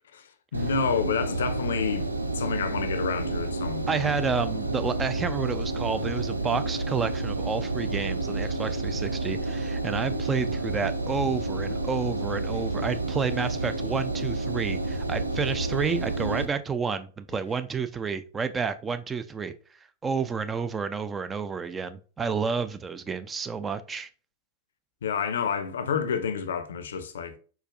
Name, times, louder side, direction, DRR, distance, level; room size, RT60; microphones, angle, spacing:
voice 1, 0.1-2.1 2.3-4.1 25.0-27.4, left 6 dB, 65° left, 0.5 m, -29 dB
Engine, 0.5-16.4, right 2 dB, 85° right, 0.5 m, -30 dB
voice 2, 3.9-19.5 20.0-24.1, right 5 dB, 20° right, 0.4 m, -30 dB
4.5 x 4.2 x 2.4 m
figure-of-eight pair, 90°, 0 cm